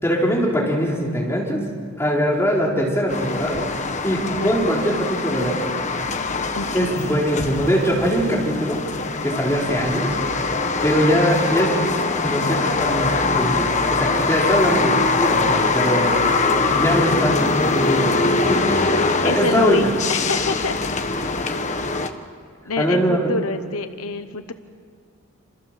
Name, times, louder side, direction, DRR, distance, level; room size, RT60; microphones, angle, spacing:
voice 1, 0.0-1.6 2.0-3.6 4.0-5.7 6.7-8.8 9.2-10.2 10.8-11.7 12.2-16.2 16.7-19.8 22.8-23.2, equal, 10° left, -2 dB, 3.9 m, -22 dB
sound 1, 3.1-22.1, left 3 dB, 30° left, 1.3 m, -22 dB
voice 2, 6.5-7.2 19.2-20.8 21.2-21.4 22.6-24.5, left 3 dB, 75° left, 10 dB, 1.1 m, -26 dB
28.5 x 27.0 x 7.6 m, 2.1 s
head